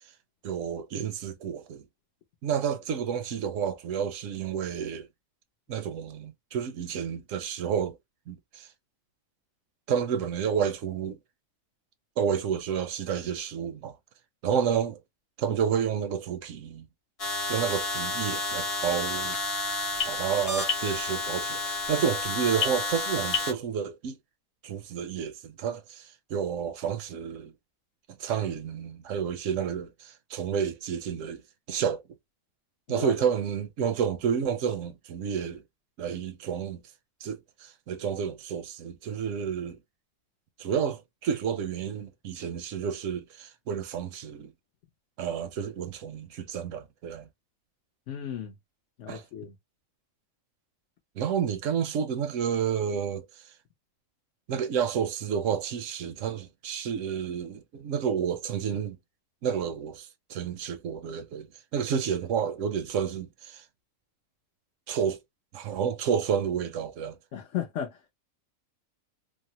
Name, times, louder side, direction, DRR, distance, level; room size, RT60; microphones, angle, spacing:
voice 1, 0.4-1.8 2.4-5.1 5.7-8.0 8.3-8.7 9.9-11.2 12.2-14.0 14.4-15.0 15.4-16.9 17.5-19.4 20.0-24.2 24.6-27.5 28.2-31.4 31.7-32.0 32.9-35.6 36.0-36.8 37.2-39.8 40.6-44.5 45.2-47.3 49.1-49.2 51.2-53.3 54.5-59.0 59.4-61.5 61.7-63.6 64.9-65.2 65.5-67.2, right 7 dB, 75° right, 0.9 m, -30 dB
sound 1, 17.2-23.5, left 3 dB, 35° left, 0.7 m, -30 dB
voice 2, 48.1-48.5 49.0-49.5 67.3-68.0, left 9 dB, 70° left, 0.9 m, -35 dB
3.2 x 2.0 x 2.7 m
omnidirectional pair, 1.4 m